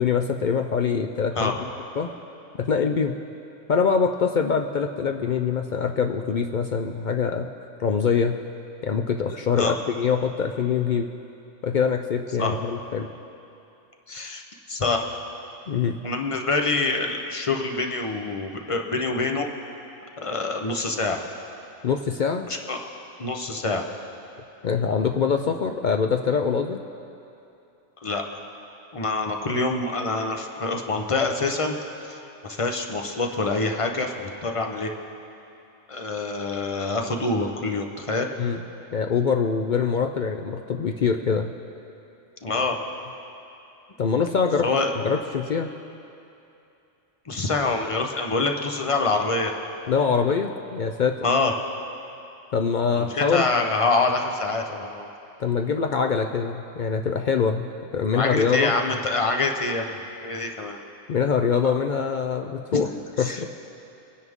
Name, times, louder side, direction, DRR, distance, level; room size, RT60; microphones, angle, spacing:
voice 1, 0.0-1.7 2.0-2.1 2.6-3.1 3.7-7.5 7.8-8.4 8.8-11.1 11.6-13.1 15.7-16.0 21.8-22.5 24.6-26.8 38.4-38.6 38.9-41.5 44.0-44.7 45.0-45.7 49.9-51.2 52.5-53.4 55.4-58.7 61.1-62.9 63.2-63.4, left 6 dB, 60° left, 4 dB, 0.5 m, -24 dB
voice 2, 9.3-9.7 12.4-12.6 14.1-14.4 14.7-15.0 16.0-19.5 20.2-21.2 22.5-22.9 23.2-23.8 28.0-28.2 28.9-32.2 32.4-34.9 35.9-38.3 42.4-42.8 44.6-44.9 47.2-49.5 51.2-51.5 52.9-55.1 58.1-60.8 62.7-62.8 63.2-63.4, left 3 dB, 30° left, 3 dB, 0.8 m, -26 dB
23.0 x 9.7 x 3.6 m, 2.8 s
omnidirectional pair, 1.3 m